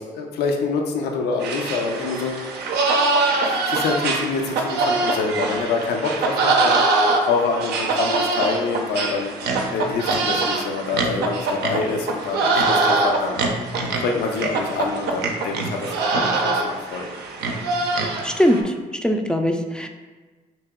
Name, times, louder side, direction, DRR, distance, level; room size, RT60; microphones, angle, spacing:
voice 1, 0.0-2.5 3.4-6.9 7.2-9.3 9.7-13.5 13.8-17.1, left 4 dB, 75° left, 2 dB, 0.5 m, -26 dB
sound 1, 1.4-18.6, right 3 dB, 70° right, 0.5 m, -23 dB
voice 2, 18.2-18.7 19.0-19.9, equal, 5° left, 4 dB, 0.4 m, -20 dB
3.0 x 2.8 x 3.4 m, 1.3 s
hypercardioid pair, 50°, 17 cm